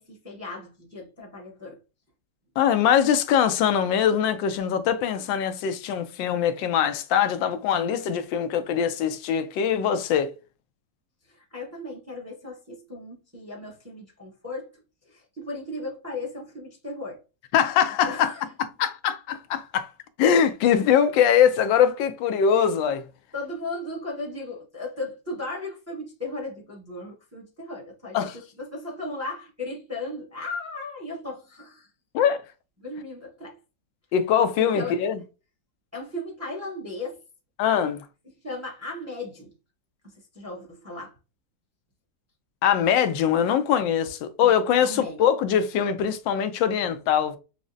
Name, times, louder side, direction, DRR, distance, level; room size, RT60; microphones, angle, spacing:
voice 1, 0.0-1.8 11.3-14.7 15.1-17.2 18.0-18.4 23.3-28.3 28.6-31.9 32.8-33.6 34.6-35.0 35.9-37.2 38.4-39.5 40.0-41.1 44.4-44.5 44.8-45.2, left 2 dB, 15° right, 0.7 m, -36 dB
voice 2, 2.6-10.3 17.5-18.3 18.8-19.9 20.2-23.0 28.1-28.4 32.1-32.4 34.1-35.2 37.6-38.0 42.6-47.4, left 8 dB, 85° left, 1.3 m, -22 dB
6.0 x 2.1 x 2.6 m
omnidirectional pair, 2.0 m